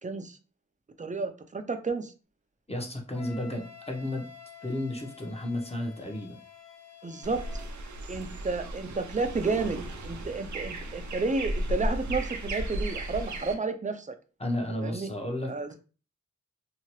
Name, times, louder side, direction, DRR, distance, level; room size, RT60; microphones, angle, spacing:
voice 1, 0.0-0.4 1.0-2.1 7.0-7.6 8.1-9.8 10.0-14.2 14.8-15.1 15.5-15.8, right 3 dB, 25° right, 8 dB, 0.5 m, -31 dB
voice 2, 2.7-4.3 4.6-6.4 14.4-15.5, left 1 dB, 20° left, 2 dB, 0.8 m, -33 dB
Wind instrument woodwind instrument, 3.1-7.7, left 8 dB, 65° left, 1.1 m, -50 dB
sound 1, 7.2-13.5, right 1 dB, 75° right, 0.6 m, -35 dB
2.8 x 2.4 x 3.0 m, 0.35 s
cardioid pair, 45°, 29 cm